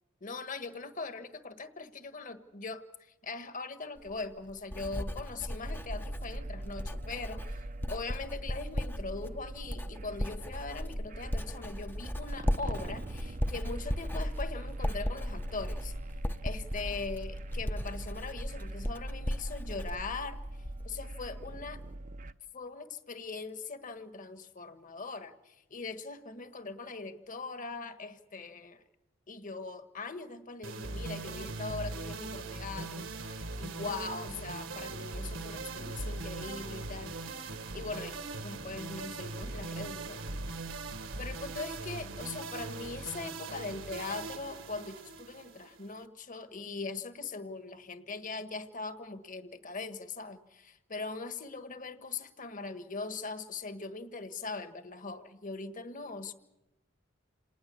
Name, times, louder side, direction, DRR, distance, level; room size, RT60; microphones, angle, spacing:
voice 1, 0.2-7.6 7.9-15.9 16.4-20.4 20.8-21.8 22.5-28.8 29.3-37.2 37.7-40.2 41.2-56.3, left 4 dB, 40° left, 10 dB, 1.5 m, -41 dB
Writing, 4.0-21.0 21.3-21.8, equal, 10° left, 0.7 m, -37 dB
sound 1, 5.6-22.3, right 1 dB, 40° right, 0.7 m, -43 dB
sound 2, 30.6-46.0, right 3 dB, 70° right, 1.6 m, -40 dB
28.0 x 19.0 x 7.0 m, 0.96 s
head